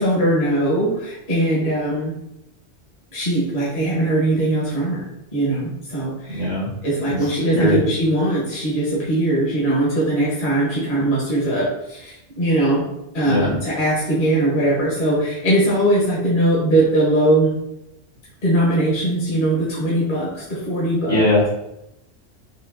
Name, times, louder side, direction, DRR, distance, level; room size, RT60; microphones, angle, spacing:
voice 1, 0.0-2.1 3.1-5.1 5.3-6.5 6.8-12.8 13.1-17.5 18.4-21.2, right 1 dB, 50° left, -7 dB, 1.3 m, -20 dB
voice 2, 6.3-6.7 7.1-7.2 7.5-7.8 13.3-13.5 21.1-21.6, left 1 dB, 75° left, -9 dB, 2.0 m, -19 dB
4.9 x 2.6 x 2.6 m, 0.86 s
omnidirectional pair, 1.2 m